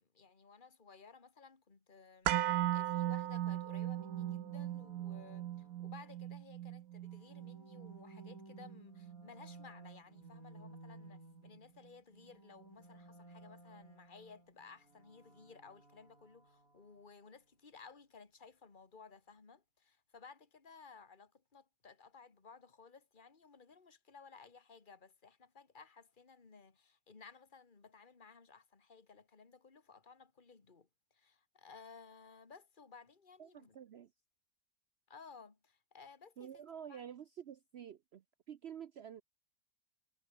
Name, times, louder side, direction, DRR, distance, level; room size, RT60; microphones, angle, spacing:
voice 1, 0.0-2.4 2.7-33.8 35.1-36.6 36.9-37.0, left 5 dB, 25° left, 2.2 m, -58 dB
sound 1, 2.2-10.3 10.6-10.7, right 13 dB, 65° right, 1.1 m, -38 dB
sound 2, 4.0-6.4 7.0-11.9 12.1-17.1, right 2 dB, 45° right, 8.1 m, -57 dB
voice 2, 33.4-34.1 36.4-39.2, right 9 dB, 85° right, 0.5 m, -49 dB
omnidirectional pair, 2.0 m